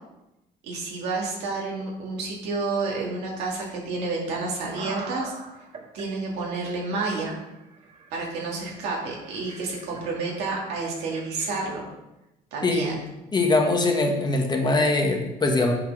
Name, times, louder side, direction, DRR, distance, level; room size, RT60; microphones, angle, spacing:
voice 1, 0.6-5.3 5.9-7.3 8.1-11.9 12.5-13.1, right 3 dB, 90° right, -2 dB, 2.4 m, -30 dB
sound 1, 4.7-6.0 6.6-6.7 7.0-11.9, right 3 dB, 40° right, 1.6 m, -44 dB
voice 2, 13.3-15.7, left 2 dB, 25° left, 2 dB, 1.4 m, -22 dB
8.1 x 4.5 x 6.1 m, 0.94 s
cardioid pair, 110°, 17 cm